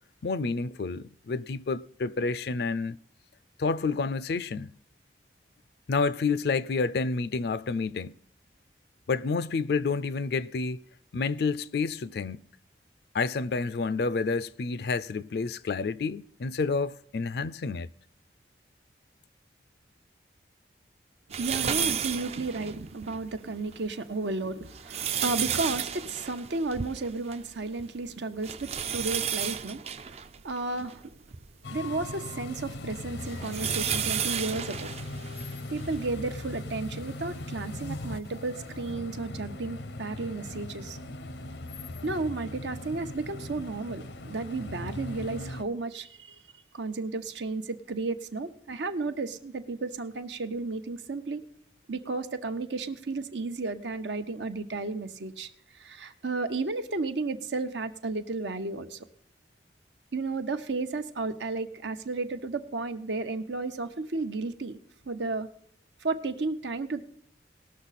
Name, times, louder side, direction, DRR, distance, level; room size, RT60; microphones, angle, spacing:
voice 1, 0.2-3.0 3.6-4.7 5.9-8.2 9.1-10.8 11.1-12.4 13.1-17.9, left 4 dB, 60° left, 0.4 m, -29 dB
sound 1, 21.3-23.2 23.7-23.8 24.5-27.5 27.8-27.9 28.4-31.4 32.1-36.0 36.7-36.8 38.1-38.2, right 8 dB, 35° right, 0.4 m, -32 dB
voice 2, 21.3-30.2 30.4-31.1 31.7-34.9 35.7-41.0 42.0-46.4 46.7-51.4 51.9-55.5 55.7-59.1 60.1-64.8 65.1-65.5 66.0-67.1, right 3 dB, 85° right, 0.9 m, -33 dB
sound 2, 31.6-45.6, left 2 dB, 85° left, 0.7 m, -39 dB
18.5 x 6.4 x 4.1 m
head